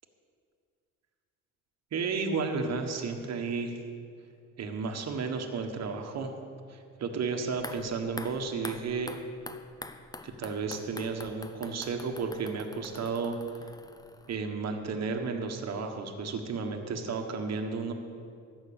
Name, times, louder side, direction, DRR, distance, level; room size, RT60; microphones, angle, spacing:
voice 1, 1.9-3.7 4.6-6.3 6.7-9.1 10.2-13.4 14.3-17.9, right 4 dB, 60° right, 5 dB, 1.3 m, -33 dB
sound 1, 7.5-14.6 14.9-15.0, left 2 dB, 15° left, 0.6 m, -45 dB
13.5 x 6.2 x 8.7 m, 2.3 s
cardioid pair, 90°, 30 cm